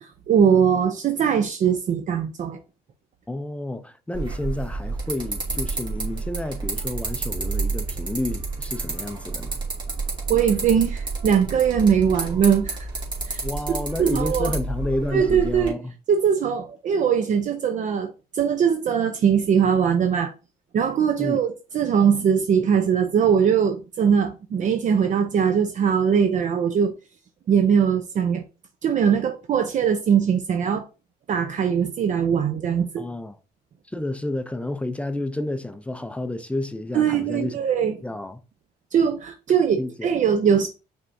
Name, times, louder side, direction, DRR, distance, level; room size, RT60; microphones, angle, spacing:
voice 1, 0.0-2.6 10.3-12.9 13.3-13.4 14.0-14.5 15.1-15.8 16.1-20.3 20.7-26.9 27.5-28.4 28.8-30.8 31.3-33.0 36.9-38.0 38.9-40.7, right 7 dB, 45° right, 0.6 m, -21 dB
voice 2, 3.3-9.6 13.4-15.9 21.2-21.4 33.0-33.4 33.9-37.6 38.0-38.4 39.8-40.1, left 1 dB, 5° left, 0.4 m, -30 dB
sound 1, 4.1-15.7, right 3 dB, 25° right, 2.3 m, -30 dB
5.4 x 3.6 x 2.6 m
cardioid pair, 110°, 17 cm